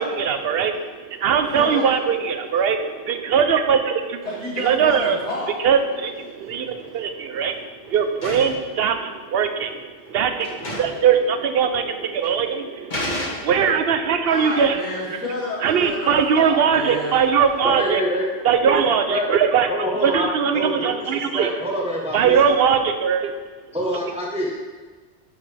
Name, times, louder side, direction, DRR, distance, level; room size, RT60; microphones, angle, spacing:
voice 1, 0.0-4.3 4.6-5.2 5.6-14.8 15.6-18.0 18.4-19.7 20.0-21.5 22.1-23.4, right 7 dB, 65° right, 8 dB, 0.8 m, -21 dB
voice 2, 1.5-1.9 4.2-5.6 14.2-17.2, left 1 dB, 75° left, -9 dB, 3.1 m, -30 dB
sound 1, 6.5-7.0 7.3-8.7 9.6-9.7 10.1-10.2 10.4-11.1 11.3-11.4 12.2-12.4 12.9-13.8, left 1 dB, 40° left, 1.6 m, -31 dB
voice 3, 17.6-18.2 18.6-18.7 19.1-19.3 19.7-20.9 21.3-22.3 23.7-24.6, equal, 5° right, -3 dB, 0.8 m, -25 dB
10.5 x 5.2 x 3.3 m, 1.4 s
omnidirectional pair, 1.2 m